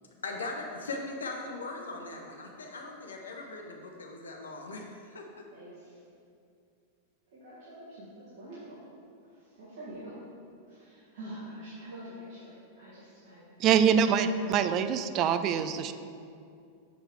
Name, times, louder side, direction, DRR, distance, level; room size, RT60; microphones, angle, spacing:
voice 1, 0.2-5.4, left 3 dB, 70° left, 2 dB, 0.7 m, -39 dB
voice 2, 3.1-3.5 5.5-6.0 7.3-8.8 9.2-10.2 10.7-13.4 14.3-14.7, right 1 dB, 55° right, -10 dB, 1.9 m, -46 dB
voice 3, 13.6-15.9, right 7 dB, 35° right, 10 dB, 0.4 m, -24 dB
6.6 x 5.9 x 4.6 m, 2.4 s
figure-of-eight pair, 90°, 0 cm